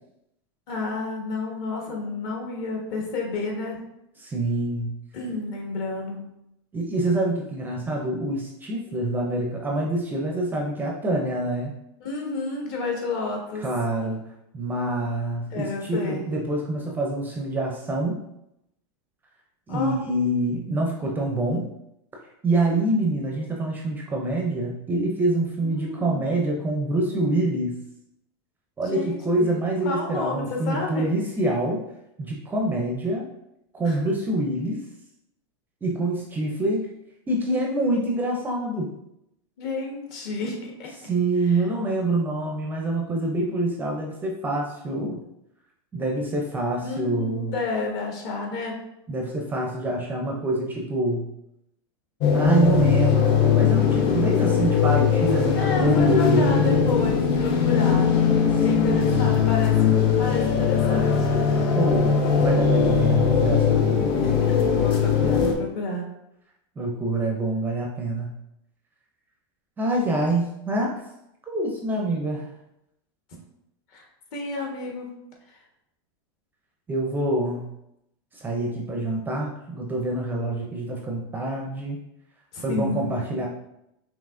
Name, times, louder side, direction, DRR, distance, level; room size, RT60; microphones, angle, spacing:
voice 1, 0.7-3.8 5.1-6.3 12.0-13.6 15.5-16.2 19.7-20.0 25.6-26.3 28.8-29.5 29.8-31.1 33.8-34.0 39.6-40.9 41.4-41.6 46.8-48.8 55.6-58.1 58.6-61.3 64.2-66.1 73.9-74.1 74.3-75.1 75.5-75.6 82.5-83.4, left 3 dB, 50° left, -1 dB, 1.3 m, -31 dB
voice 2, 4.2-4.9 6.7-11.7 13.6-14.2 14.5-18.2 19.7-21.7 22.4-27.7 28.8-31.8 32.2-33.3 33.7-34.8 35.8-36.9 37.3-38.9 41.0-45.2 45.9-47.6 49.1-51.2 52.3-56.6 58.5-59.4 61.7-64.0 66.8-68.3 69.8-71.0 71.5-72.5 76.9-77.7 78.3-82.0 82.6-83.5, right 1 dB, 10° right, 0 dB, 0.5 m, -26 dB
sound 1, 52.2-65.5, left 6 dB, 35° left, 0.6 m, -20 dB
5.4 x 2.9 x 2.5 m, 0.82 s
supercardioid pair, 150°, 15 cm